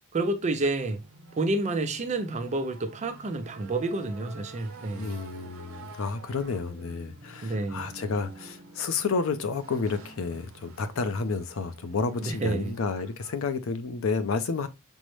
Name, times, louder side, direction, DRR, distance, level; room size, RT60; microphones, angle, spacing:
voice 1, 0.1-1.0 1.4-5.2 7.4-7.9 12.2-12.7, right 2 dB, 35° right, 0.5 m, -29 dB
sound 1, 0.6-13.4, right 2 dB, 65° right, 0.9 m, -49 dB
voice 2, 4.9-14.7, left 4 dB, 65° left, 0.5 m, -30 dB
5.3 x 2.1 x 3.1 m
head